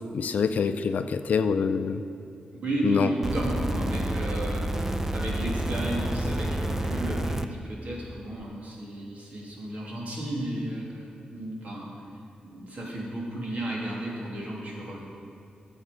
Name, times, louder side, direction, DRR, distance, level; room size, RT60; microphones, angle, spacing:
voice 1, 0.1-2.0 2.8-3.1, left 6 dB, 70° left, 9 dB, 0.5 m, -25 dB
voice 2, 2.6-11.9 12.4-15.0, right 1 dB, 60° right, -4 dB, 2.7 m, -33 dB
sound 1, 3.2-7.5 8.4-8.5, right 1 dB, 15° right, 0.5 m, -29 dB
13.0 x 7.2 x 5.3 m, 2.4 s
wide cardioid pair, 110°, 3 cm